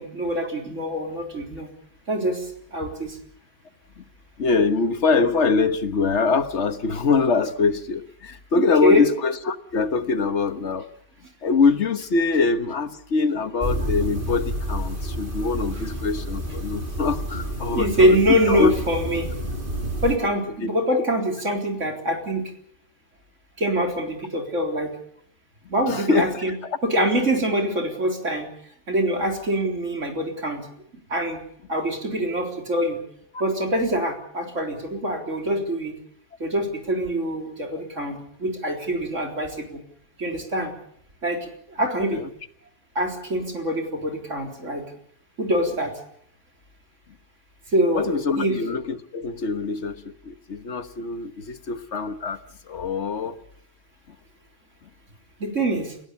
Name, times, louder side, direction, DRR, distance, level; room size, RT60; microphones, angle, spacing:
voice 1, 0.0-1.7 2.1-3.2 8.5-9.0 17.7-19.3 20.0-22.5 23.6-24.9 25.7-26.5 26.8-28.5 28.9-30.7 31.1-31.4 31.7-33.0 33.4-35.9 36.4-39.8 40.2-40.7 41.2-42.2 43.0-44.8 45.4-45.9 47.7-48.6 55.4-55.9, equal, 90° right, 3 dB, 4.3 m, -24 dB
voice 2, 4.4-10.9 11.4-18.7 20.6-20.7 25.9-26.7 33.3-33.4 42.1-42.3 47.9-52.4 52.7-53.4 54.8-54.9, left 4 dB, 70° left, 11 dB, 1.6 m, -23 dB
sound 1, 13.6-20.2, equal, 45° right, 3.5 m, -29 dB
29.5 x 16.5 x 7.0 m, 0.67 s
omnidirectional pair, 1.3 m